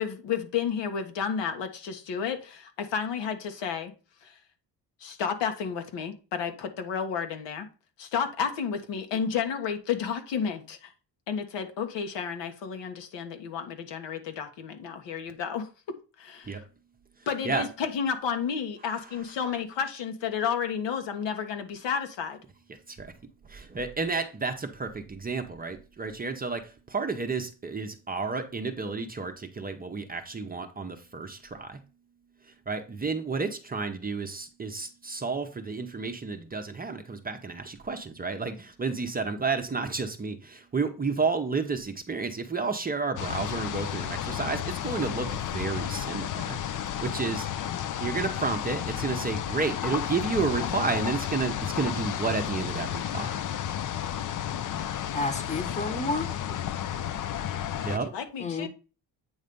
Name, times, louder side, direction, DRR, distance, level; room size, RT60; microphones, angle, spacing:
voice 1, 0.0-3.9 4.2-4.4 5.0-7.7 8.0-10.9 11.3-16.6 17.3-22.4 57.8-58.7, left 7 dB, 75° left, 1.4 m, -31 dB
voice 2, 18.9-19.2 22.7-23.1 23.4-31.8 32.4-46.6 47.0-47.5 48.0-53.4 57.8-58.1, right 4 dB, 20° right, 0.7 m, -31 dB
sound 1, 43.2-58.0, left 10 dB, 45° left, 0.5 m, -32 dB
voice 3, 55.1-56.6 58.4-58.7, left 3 dB, 15° left, 1.1 m, -31 dB
8.7 x 3.3 x 5.2 m
cardioid pair, 125°, 43 cm